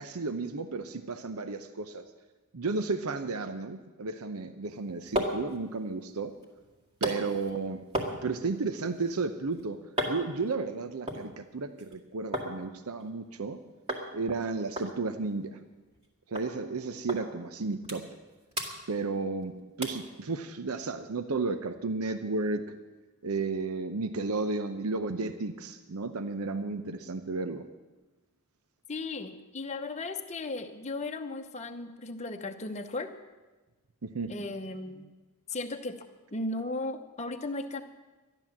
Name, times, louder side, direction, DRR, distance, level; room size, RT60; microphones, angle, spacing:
voice 1, 0.0-2.0 2.5-6.3 7.0-7.8 8.2-13.6 14.1-15.6 16.3-18.1 18.9-22.7 23.2-27.6 34.0-34.3, right 3 dB, 75° right, 10 dB, 0.8 m, -33 dB
sound 1, 4.6-12.5 12.8-13.5 13.9-14.1 14.4-14.5 14.8-16.1 16.4-16.5 17.1-17.2 17.6-18.3 18.5-19.4 19.8-20.1 20.6-20.7, right 1 dB, 30° right, 2.0 m, -37 dB
voice 2, 28.9-33.1 34.3-35.1 35.5-36.1 36.3-37.8, left 2 dB, 30° left, 5 dB, 0.9 m, -36 dB
13.0 x 11.0 x 7.2 m, 1.2 s
head